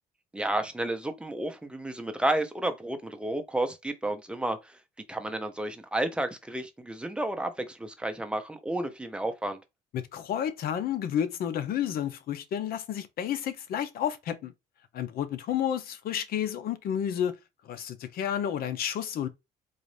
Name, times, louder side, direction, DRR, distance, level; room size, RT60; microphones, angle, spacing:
voice 1, 0.3-4.8 5.1-9.6, right 1 dB, 5° right, 0.7 m, -31 dB
voice 2, 9.9-14.5 14.9-17.4 17.6-19.3, left 9 dB, 60° left, 0.7 m, -31 dB
4.0 x 2.5 x 3.2 m
cardioid pair, 110°, 17 cm